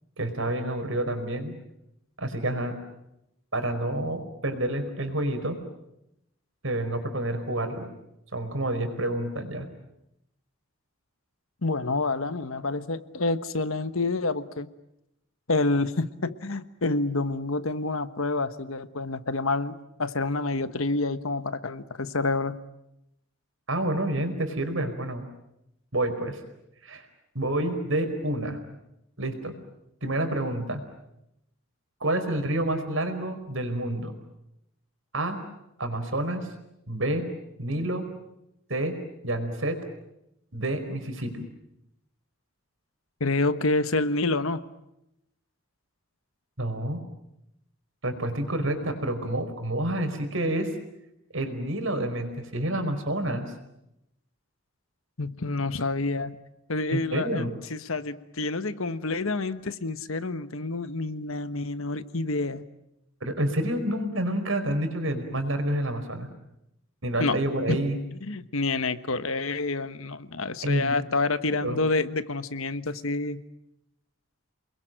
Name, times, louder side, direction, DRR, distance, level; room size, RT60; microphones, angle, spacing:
voice 1, 0.2-1.5 2.2-2.7 3.5-5.6 6.6-7.9 8.3-9.7 23.7-25.3 25.9-26.4 26.8-27.0 27.3-28.6 29.2-29.5 30.0-30.8 32.0-34.1 35.1-35.4 35.8-36.5 36.9-37.2 37.6-38.1 38.7-38.9 39.2-39.8 40.5-41.5 46.6-47.0 48.0-50.7 51.3-53.5 56.9-57.6 63.2-66.3 67.0-68.0 70.6-70.9 71.6-71.8, right 1 dB, 65° right, 6 dB, 4.9 m, -28 dB
voice 2, 11.6-14.7 15.5-22.6 43.2-44.6 55.2-56.3 56.7-57.4 57.7-62.6 67.2-67.4 67.7-67.8 68.2-73.4, left 3 dB, 75° left, 12 dB, 1.3 m, -28 dB
29.5 x 22.0 x 9.1 m, 0.84 s
head